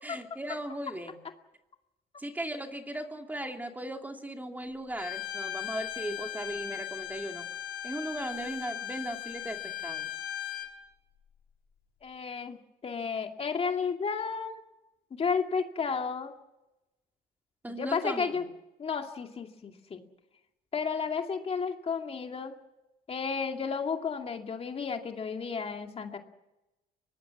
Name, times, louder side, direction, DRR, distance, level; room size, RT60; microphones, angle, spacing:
voice 1, 0.0-1.2 2.2-7.5 7.8-10.1 17.6-18.4, right 1 dB, 10° right, 4 dB, 2.6 m, -37 dB
Bowed string instrument, 5.0-10.7, left 11 dB, 65° left, 6.1 m, -38 dB
voice 2, 12.0-14.6 15.1-16.3 17.8-18.4 18.8-20.0 20.7-22.5 23.1-26.2, left 5 dB, 35° left, 4 dB, 2.4 m, -32 dB
24.0 x 19.0 x 7.4 m, 0.97 s
cardioid pair, 110°, 17 cm